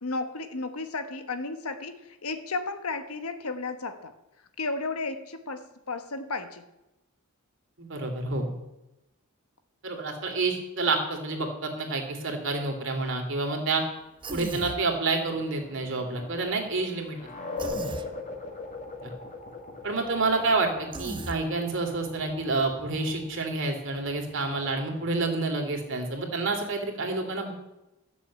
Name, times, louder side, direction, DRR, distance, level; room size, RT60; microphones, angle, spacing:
voice 1, 0.0-4.1 4.6-6.7, left 3 dB, 85° left, 9 dB, 1.3 m, -33 dB
voice 2, 7.8-8.5 9.8-13.8 14.3-17.2 17.6-17.8 19.0-19.1 19.8-27.5, right 3 dB, 60° right, 2 dB, 2.8 m, -28 dB
Human voice, 14.2-14.8 17.6-18.1 20.9-21.4, right 2 dB, 20° right, 0.9 m, -36 dB
sound 1, 14.8-26.2, left 3 dB, 35° left, 1.9 m, -42 dB
13.5 x 7.0 x 8.6 m, 0.97 s
head